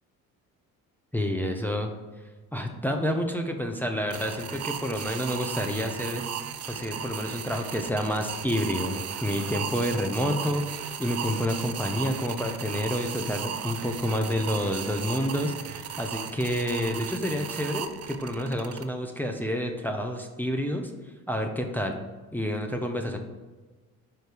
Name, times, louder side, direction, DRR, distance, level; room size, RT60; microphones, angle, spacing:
voice 1, 1.1-1.9 2.5-6.3 6.7-20.9 21.3-22.0 22.3-23.2, equal, 5° left, 2 dB, 0.8 m, -29 dB
sound 1, 4.1-18.8, right 8 dB, 35° right, 0.6 m, -36 dB
5.3 x 4.5 x 4.8 m, 1.3 s
hypercardioid pair, 45°, 44 cm